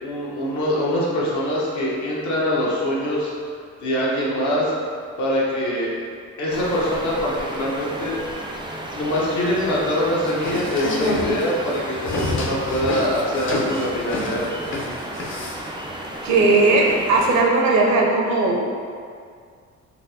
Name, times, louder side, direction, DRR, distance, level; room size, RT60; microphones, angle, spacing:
voice 1, 0.0-3.3 3.8-4.7 5.2-5.9 6.4-8.2 8.9-14.5, equal, 75° left, -6 dB, 0.9 m, -23 dB
sound 1, 6.5-17.4, right 1 dB, 15° right, 0.4 m, -33 dB
sound 2, 10.3-15.7, left 2 dB, 45° left, 0.5 m, -27 dB
voice 2, 16.2-18.6, right 3 dB, 70° right, -1 dB, 0.6 m, -17 dB
4.2 x 2.0 x 2.6 m, 2.2 s
cardioid pair, 90°, 30 cm